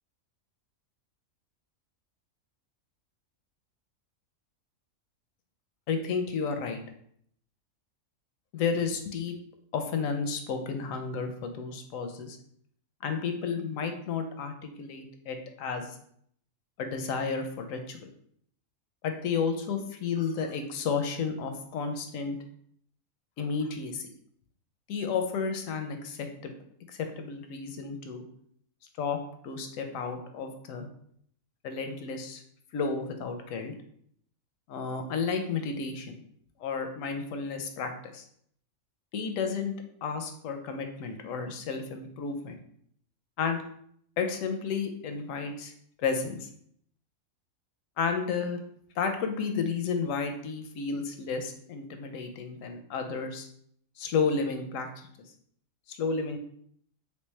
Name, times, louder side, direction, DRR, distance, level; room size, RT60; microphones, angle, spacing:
voice 1, 5.9-6.8 8.5-9.3 9.7-12.4 13.0-15.9 16.8-18.1 19.0-22.4 23.4-24.1 24.9-26.5 26.9-28.2 29.0-29.2 29.4-30.9 31.6-32.4 32.7-33.7 34.7-36.2 36.6-38.2 39.1-39.7 40.0-42.6 43.4-43.6 44.2-45.7 46.0-46.5 48.0-48.6 49.0-53.5 54.0-54.9 55.9-56.4, left 5 dB, 75° left, 6 dB, 1.0 m, -32 dB
3.3 x 3.2 x 3.1 m, 0.66 s
omnidirectional pair, 1.4 m